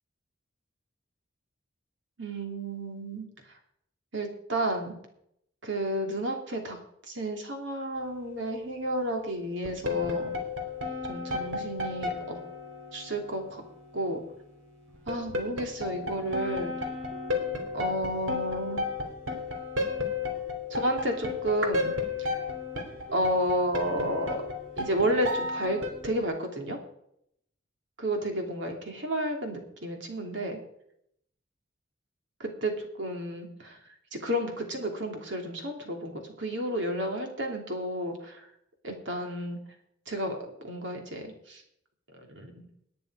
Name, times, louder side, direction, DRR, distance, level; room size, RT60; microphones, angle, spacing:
voice 1, 2.2-3.3 4.1-5.0 5.6-6.8 7.1-10.3 11.1-12.4 12.9-13.6 13.9-14.2 15.1-16.7 17.7-18.9 20.7-21.9 22.2-22.3 23.1-24.4 24.8-26.8 28.0-30.6 32.4-33.8 34.1-38.4 38.8-39.6 40.1-41.6 42.2-42.7, right 1 dB, 65° right, 3 dB, 2.9 m, -31 dB
sound 1, 7.9-8.6 9.6-14.0 14.9-26.2, left 3 dB, 85° right, 2.9 m, -34 dB
18.5 x 9.5 x 4.9 m, 0.74 s
head